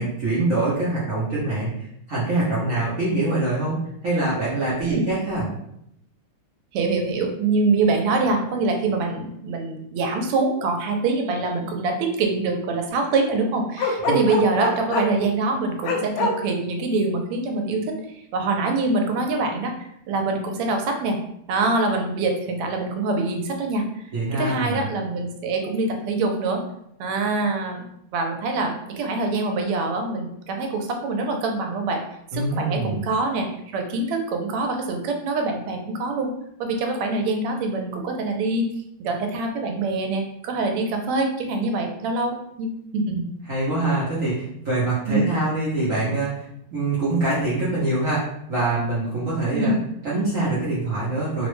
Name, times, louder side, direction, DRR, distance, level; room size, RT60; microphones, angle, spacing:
voice 1, 0.0-5.5 14.1-14.2 24.1-24.8 32.3-33.0 43.5-46.4 46.7-49.7 50.0-51.5, right 2 dB, 65° right, -9 dB, 0.8 m, -24 dB
voice 2, 6.7-19.7 20.1-21.2 21.5-24.0 24.3-26.6 27.0-27.8 28.1-32.0 32.3-36.3 36.6-38.7 39.0-43.3 45.1-45.3 49.5-49.8, right 3 dB, 90° right, 3 dB, 1.5 m, -24 dB
Bark, 13.8-15.2 15.8-16.3, left 2 dB, 80° left, 0.9 m, -23 dB
3.6 x 2.1 x 3.0 m, 0.76 s
omnidirectional pair, 2.4 m